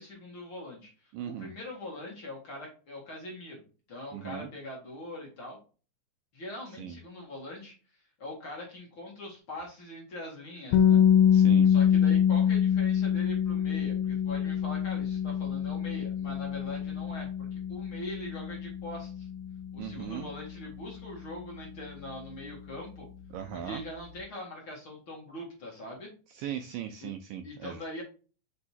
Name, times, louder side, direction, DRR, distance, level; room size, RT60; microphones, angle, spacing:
voice 1, 0.0-3.6 3.9-5.6 6.3-11.0 11.6-19.3 19.7-23.1 23.5-26.1 27.0-27.1 27.4-28.0, left 1 dB, 40° left, -2 dB, 2.2 m, -42 dB
voice 2, 1.1-1.5 4.1-4.5 6.8-7.0 11.3-11.7 19.8-20.3 23.3-23.8 26.4-27.8, right 10 dB, 80° right, 7 dB, 2.0 m, -38 dB
sound 1, 10.7-22.6, left 9 dB, 80° left, 2.4 m, -26 dB
6.7 x 5.1 x 2.8 m, 0.36 s
omnidirectional pair, 4.4 m